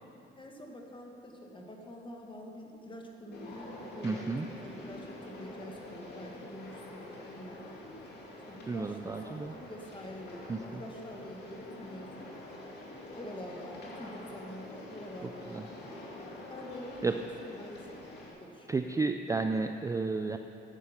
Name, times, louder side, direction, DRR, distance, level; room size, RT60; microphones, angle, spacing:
voice 1, 0.4-7.8 8.4-12.4 13.1-16.0 16.5-18.0 18.4-19.0, left 1 dB, 25° left, 1 dB, 1.5 m, -46 dB
sound 1, 3.3-18.3, left 1 dB, 55° left, 2.4 m, -46 dB
voice 2, 4.0-4.5 8.7-9.5 10.5-10.8 15.5-15.6 17.0-17.1 18.7-20.4, right 3 dB, 15° right, 6 dB, 0.3 m, -32 dB
9.7 x 7.6 x 5.6 m, 2.9 s
cardioid pair, 90°, 20 cm